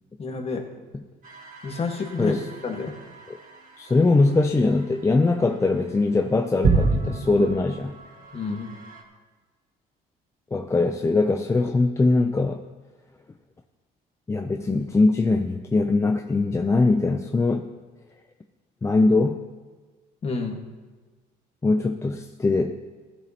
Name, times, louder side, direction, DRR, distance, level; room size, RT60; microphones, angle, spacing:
voice 1, 0.2-0.6 1.6-2.9 8.3-8.7 20.2-20.6, left 4 dB, 35° left, 2 dB, 1.6 m, -29 dB
sound 1, 1.2-9.0, right 4 dB, 55° right, 1.8 m, -31 dB
voice 2, 3.8-8.0 10.5-12.6 14.3-17.7 18.8-19.4 21.6-22.8, left 3 dB, 15° left, 5 dB, 0.5 m, -21 dB
16.5 x 12.0 x 2.9 m, 1.3 s
cardioid pair, 110°, 17 cm